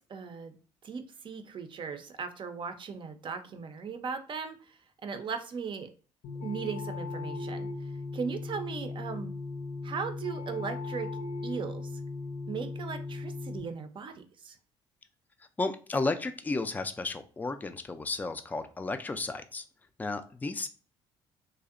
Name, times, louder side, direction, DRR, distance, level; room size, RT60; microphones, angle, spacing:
voice 1, 0.1-0.6 0.8-5.9 6.4-9.3 9.8-11.1 11.4-12.0 12.5-14.6, right 6 dB, 45° right, 8 dB, 0.5 m, -38 dB
sound 1, 6.2-13.6, left 3 dB, 55° left, 0.6 m, -37 dB
voice 2, 15.6-19.6 20.0-20.7, left 3 dB, 15° left, 9 dB, 0.3 m, -33 dB
2.6 x 2.0 x 2.4 m, 0.38 s
supercardioid pair, 60°, 12 cm